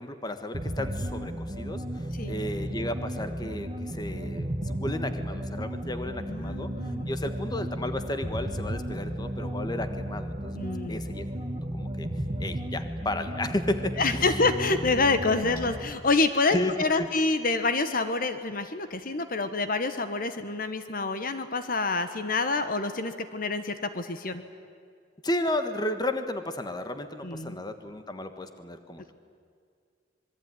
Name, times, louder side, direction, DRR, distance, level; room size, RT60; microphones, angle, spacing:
voice 1, 0.0-6.7 7.1-10.6 10.9-11.3 11.7-12.1 12.4-14.3 16.5-17.1 25.2-29.1, left 1 dB, 20° left, 8 dB, 1.4 m, -33 dB
sound 1, 0.5-15.9, equal, 30° right, 1.8 m, -34 dB
voice 2, 6.3-7.1 10.5-11.0 14.0-24.4 27.2-27.6, left 3 dB, 50° left, 10 dB, 1.4 m, -27 dB
26.0 x 22.0 x 9.8 m, 2.2 s
head